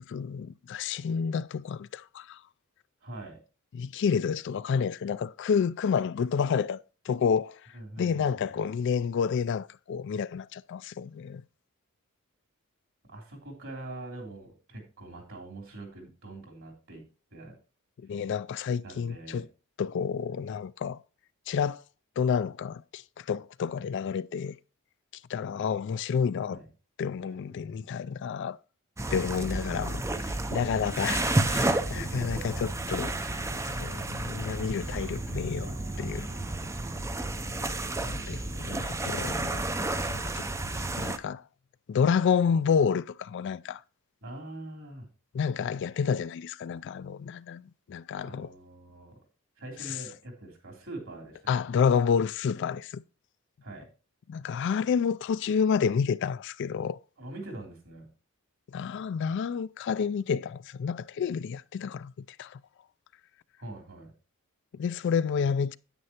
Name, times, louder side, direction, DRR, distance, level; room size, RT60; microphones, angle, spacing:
voice 1, 0.1-2.4 3.7-6.8 7.1-7.6 8.0-11.4 18.0-19.5 19.8-21.0 21.5-21.8 22.2-24.6 25.3-26.6 27.0-28.6 29.1-36.3 37.9-39.7 40.0-40.5 41.0-41.4 41.9-43.8 45.3-47.6 47.9-48.5 51.5-53.0 54.3-57.0 58.7-62.6 64.7-65.8, left 6 dB, 55° left, 0.3 m, -29 dB
voice 2, 3.0-3.4 7.7-8.5 13.1-17.0 17.3-17.6 18.8-19.4 26.5-26.7 27.2-27.9 31.8-32.4 33.4-34.1 35.6-37.0 44.2-45.1 48.2-49.2 49.6-51.4 53.6-53.9 57.2-58.1 63.6-64.1, right 2 dB, 60° right, 3.3 m, -44 dB
sound 1, 29.0-41.2, right 2 dB, 15° right, 0.5 m, -31 dB
9.6 x 8.8 x 2.9 m
head